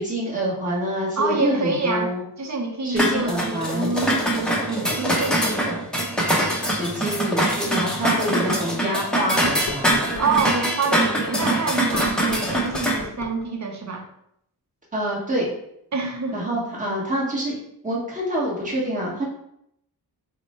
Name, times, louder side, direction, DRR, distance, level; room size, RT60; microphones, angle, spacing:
voice 1, 0.0-2.2 2.8-4.0 6.3-10.1 14.9-15.5 16.3-17.5 17.8-19.3, equal, 20° right, -5 dB, 1.2 m, -26 dB
voice 2, 1.2-2.1 2.4-5.8 8.0-8.1 10.2-14.1 15.9-16.5, right 3 dB, 45° right, 2 dB, 0.7 m, -27 dB
sound 1, 3.0-13.0, right 1 dB, ahead, 0.7 m, -23 dB
sound 2, 7.4-7.5 8.0-8.1 9.3-10.5 11.8-13.5, left 4 dB, 50° left, 0.5 m, -36 dB
4.2 x 2.1 x 4.2 m, 0.75 s
wide cardioid pair, 120°, 40 cm